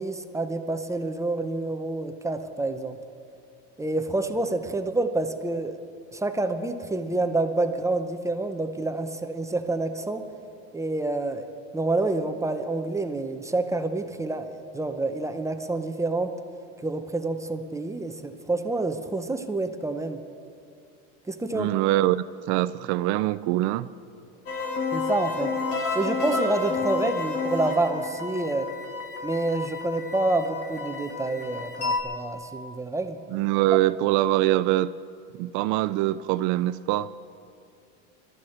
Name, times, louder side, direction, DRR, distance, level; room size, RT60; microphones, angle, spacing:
voice 1, 0.0-3.0 3.8-5.7 6.1-10.2 10.7-11.5 11.7-16.3 16.8-20.2 21.3-21.7 24.9-25.5 25.9-28.7 29.2-33.2, right 2 dB, 10° right, 0.6 m, -28 dB
voice 2, 21.5-23.9 33.3-34.9 35.4-37.1, right 15 dB, 55° right, 0.5 m, -23 dB
sound 1, 24.5-32.0, left 4 dB, 45° left, 2.2 m, -30 dB
23.0 x 13.5 x 4.3 m
supercardioid pair, 135°, 34 cm